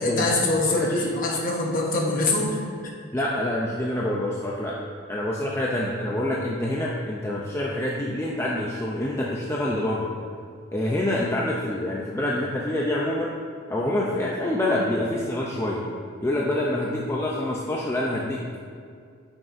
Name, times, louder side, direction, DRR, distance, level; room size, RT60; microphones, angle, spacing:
voice 1, 0.0-2.6, left 2 dB, 40° left, -2 dB, 1.1 m, -24 dB
voice 2, 0.7-1.1 3.1-4.8 5.1-10.1 10.7-13.4 13.7-15.8 16.2-18.6, left 1 dB, 10° left, -4 dB, 0.4 m, -26 dB
9.0 x 6.1 x 2.6 m, 2.3 s
head